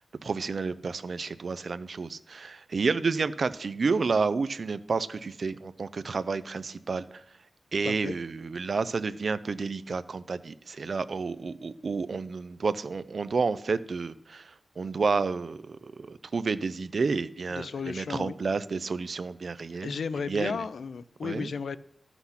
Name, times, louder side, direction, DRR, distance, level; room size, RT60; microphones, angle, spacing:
voice 1, 0.2-7.2 7.7-19.9 20.3-20.6 21.2-21.5, right 4 dB, 55° right, 15 dB, 0.5 m, -30 dB
voice 2, 17.5-18.3 19.8-21.8, left 5 dB, 85° left, 16 dB, 0.4 m, -34 dB
13.0 x 6.0 x 5.7 m, 0.72 s
wide cardioid pair, 140°, 0 cm